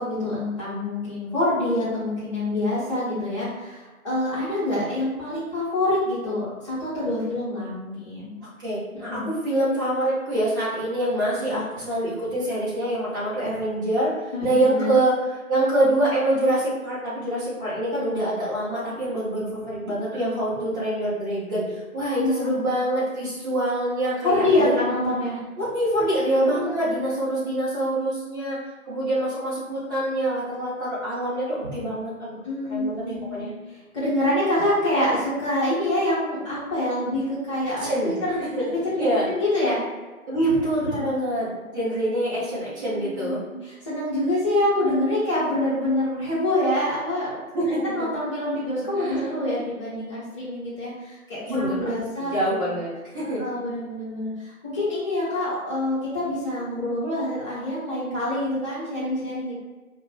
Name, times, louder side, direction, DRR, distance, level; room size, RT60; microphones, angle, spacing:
voice 1, 0.0-8.4 9.1-9.3 11.4-11.5 14.3-15.0 20.2-20.3 22.2-22.5 24.2-25.4 26.5-26.9 32.4-33.5 33.9-39.8 40.8-41.1 42.7-47.4 47.8-52.3 53.4-59.5, left 1 dB, 20° left, -9 dB, 1.3 m, -26 dB
voice 2, 8.6-15.1 15.5-24.8 25.6-28.6 28.8-32.4 32.7-33.5 37.8-38.2 38.5-38.7 39.0-39.3 40.3-43.4 47.5-48.1 48.9-49.4 51.4-51.9 52.2-53.4, right 1 dB, 15° right, -11 dB, 0.9 m, -25 dB
5.3 x 2.6 x 2.5 m, 1.3 s
figure-of-eight pair, 155°, 43 cm